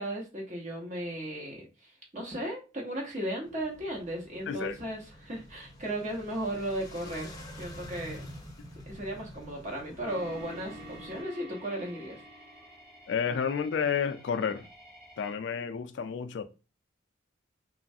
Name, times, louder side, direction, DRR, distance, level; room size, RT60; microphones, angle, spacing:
voice 1, 0.0-7.3 7.6-8.3 8.9-12.2, right 1 dB, 35° right, 0.9 m, -36 dB
sound 1, 3.4-11.2, equal, 20° left, 0.6 m, -47 dB
voice 2, 4.5-4.8 13.1-14.6 15.2-16.4, left 7 dB, 60° left, 0.3 m, -30 dB
sound 2, 10.0-15.3, equal, 5° right, 1.1 m, -49 dB
3.1 x 2.3 x 2.6 m
head